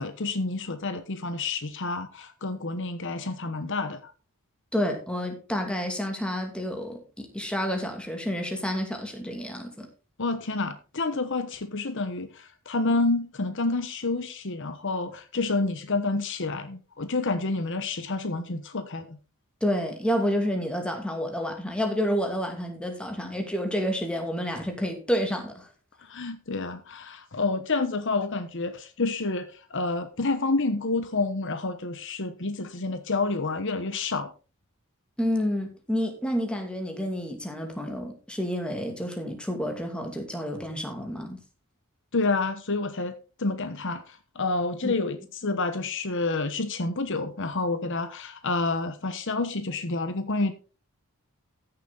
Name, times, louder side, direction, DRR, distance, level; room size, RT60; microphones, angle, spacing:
voice 1, 0.0-4.1 10.2-19.2 26.0-34.3 42.1-43.1 43.4-50.5, left 3 dB, 60° left, 1.1 m, -29 dB
voice 2, 4.7-9.9 19.6-25.7 35.2-41.4 44.8-44.9, equal, 5° left, 2.4 m, -29 dB
14.5 x 6.9 x 4.0 m
head